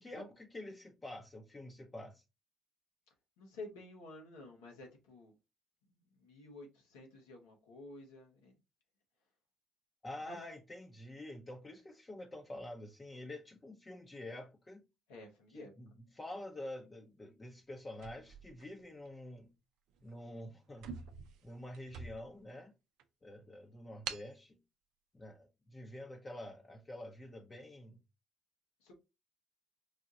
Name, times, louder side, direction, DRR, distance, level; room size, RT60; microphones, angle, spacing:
voice 1, 0.0-2.2 10.0-14.8 15.5-19.5 20.0-20.9 21.4-22.7 23.2-24.6 25.1-28.0, left 1 dB, 30° left, 0.8 m, -48 dB
voice 2, 3.4-5.3 6.1-8.5 10.3-10.4 15.1-15.7 28.8-28.9, left 2 dB, 85° left, 1.2 m, -51 dB
sound 1, 18.0-19.3 19.9-20.1 20.4-20.5 20.7-22.5 23.0-23.1 24.1-24.4, right 6 dB, 75° right, 0.5 m, -46 dB
4.8 x 2.4 x 2.8 m
hypercardioid pair, 55°, 0 cm